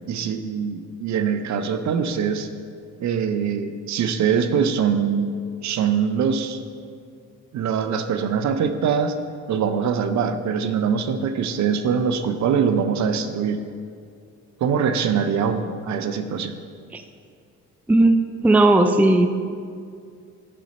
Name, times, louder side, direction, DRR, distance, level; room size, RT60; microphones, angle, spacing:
voice 1, 0.1-2.5 3.0-5.4 5.6-6.6 7.5-9.1 9.5-13.6 14.6-16.6, right 7 dB, 65° right, 9 dB, 0.6 m, -23 dB
voice 2, 17.9-19.3, right 2 dB, 5° right, 8 dB, 0.4 m, -16 dB
10.0 x 3.9 x 5.3 m, 2.3 s
cardioid pair, 90°, 30 cm